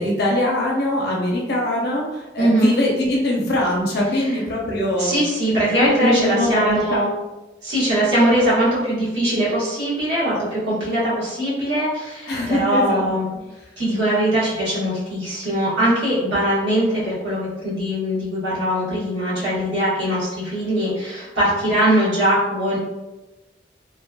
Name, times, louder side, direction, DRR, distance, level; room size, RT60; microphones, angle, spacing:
voice 1, 0.0-5.2 6.0-7.1 12.3-13.1, left 1 dB, 60° left, -3 dB, 0.6 m, -22 dB
voice 2, 2.4-2.8 5.0-7.1 7.6-13.3 13.8-22.8, right 1 dB, 80° right, -9 dB, 1.4 m, -21 dB
3.1 x 2.4 x 2.2 m, 1.1 s
head